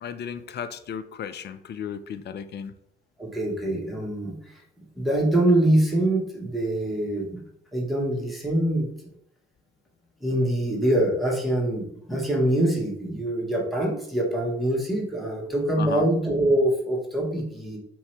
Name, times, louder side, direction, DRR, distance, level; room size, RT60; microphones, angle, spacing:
voice 1, 0.0-2.7 15.8-16.1, left 7 dB, 35° left, 10 dB, 0.4 m, -34 dB
voice 2, 3.2-4.6 5.0-7.4 7.7-8.9 10.2-17.8, right 1 dB, ahead, -3 dB, 1.2 m, -24 dB
3.0 x 2.7 x 3.1 m, 0.71 s
hypercardioid pair, 45°, 32 cm